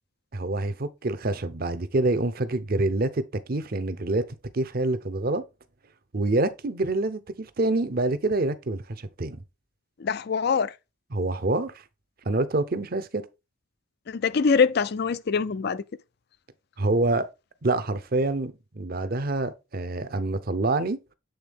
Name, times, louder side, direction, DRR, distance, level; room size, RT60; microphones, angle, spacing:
voice 1, 0.3-3.2 3.5-4.3 4.5-5.4 6.1-9.4 11.1-11.7 12.3-13.2 16.8-17.3 17.6-21.0, right 2 dB, 45° right, 0.7 m, -26 dB
voice 2, 10.0-10.7 14.1-15.8, left 5 dB, 55° left, 0.4 m, -24 dB
8.0 x 3.7 x 3.5 m
head